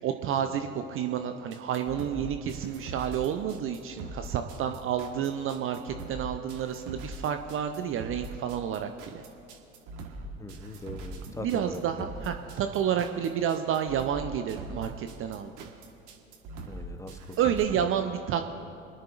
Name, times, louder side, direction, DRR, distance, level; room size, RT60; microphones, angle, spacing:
voice 1, 0.0-9.2 11.4-15.7 17.4-18.4, right 9 dB, 35° right, 7 dB, 0.6 m, -30 dB
sound 1, 1.5-17.6, right 2 dB, 55° right, 1.6 m, -42 dB
voice 2, 10.4-12.1 16.7-17.9, left 1 dB, 10° left, 8 dB, 0.9 m, -41 dB
27.5 x 10.5 x 2.5 m, 3.0 s
figure-of-eight pair, 75°, 39 cm